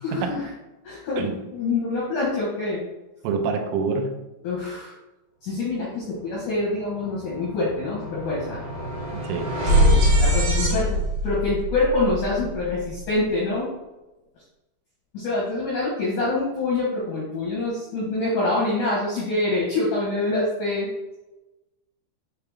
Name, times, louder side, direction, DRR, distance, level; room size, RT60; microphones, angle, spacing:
voice 1, 0.0-0.5 0.8-2.8 4.4-4.9 5.4-8.6 9.6-13.7 15.1-20.9, left 2 dB, 85° left, -6 dB, 1.8 m, -26 dB
voice 2, 1.2-1.5 3.2-4.2 9.1-9.5, right 5 dB, 85° right, 4 dB, 3.3 m, -26 dB
sound 1, 6.5-6.6 6.9-13.2, equal, 65° right, 2.7 m, -23 dB
7.9 x 3.6 x 3.5 m, 1.0 s
omnidirectional pair, 5.8 m